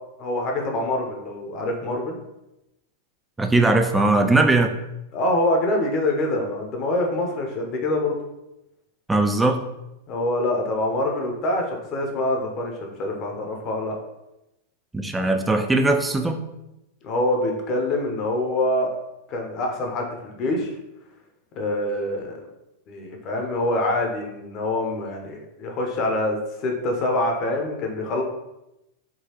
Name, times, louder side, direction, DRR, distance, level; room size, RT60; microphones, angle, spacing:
voice 1, 0.2-2.2 5.1-8.2 10.1-14.0 17.0-18.9 19.3-20.8 21.5-22.4 22.9-28.2, left 1 dB, 40° left, 2 dB, 0.8 m, -25 dB
voice 2, 3.4-4.7 9.1-9.6 14.9-16.4, right 2 dB, 10° right, 5 dB, 0.4 m, -19 dB
3.8 x 2.3 x 2.9 m, 0.92 s
hypercardioid pair, 100°, 0 cm